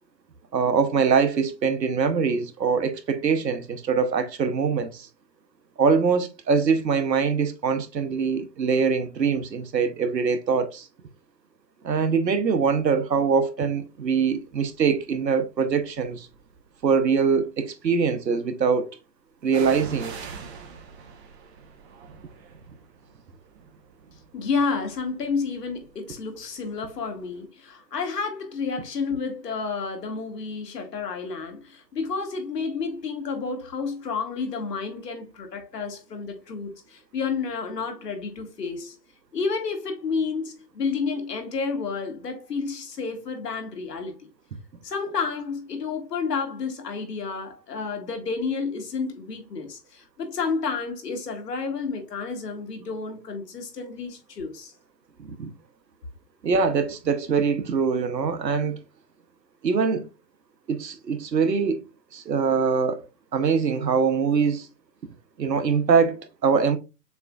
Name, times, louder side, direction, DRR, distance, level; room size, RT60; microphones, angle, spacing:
voice 1, 0.5-5.1 5.8-10.9 11.8-16.3 16.8-18.9 19.4-20.1 55.2-55.5 56.4-58.8 59.6-60.1 60.7-61.8 62.1-63.1 63.3-64.7 65.4-66.8, right 5 dB, 85° right, 1.0 m, -23 dB
sound 1, 14.5-14.9 15.6-16.6 19.5-27.1 27.4-27.5, right 5 dB, 40° right, 1.2 m, -44 dB
voice 2, 24.3-39.0 39.3-44.3 44.8-54.7, left 5 dB, 75° left, 1.8 m, -30 dB
6.8 x 3.4 x 2.3 m
hypercardioid pair, 135°, 49 cm